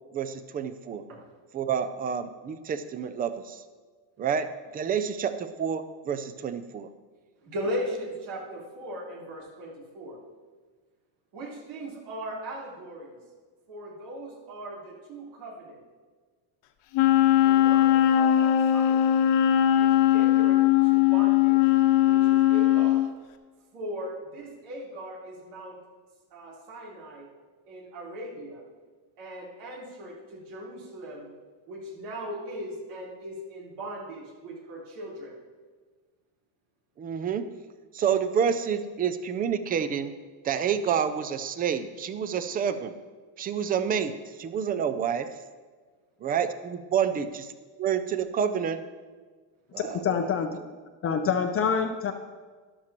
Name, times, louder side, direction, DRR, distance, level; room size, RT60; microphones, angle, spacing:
voice 1, 0.1-1.0 1.5-3.6 4.2-4.5 4.7-6.9 37.0-37.5 37.9-40.1 40.4-42.9 43.4-45.3 46.2-47.3 47.8-48.8 49.7-50.0, right 7 dB, 20° right, 11 dB, 0.3 m, -28 dB
voice 2, 7.4-10.2 11.3-13.2 13.7-15.8 17.4-19.3 19.7-21.6 22.1-23.0 23.7-25.8 26.3-27.3 27.7-28.6 29.2-31.3 31.7-35.3, equal, 85° right, -4 dB, 3.9 m, -38 dB
Wind instrument woodwind instrument, 16.9-23.1, left 12 dB, 65° left, 1.1 m, -20 dB
voice 3, 49.8-50.5 51.0-52.1, left 6 dB, 30° left, 5 dB, 0.5 m, -26 dB
13.5 x 11.5 x 3.0 m, 1.4 s
cardioid pair, 145°, 48 cm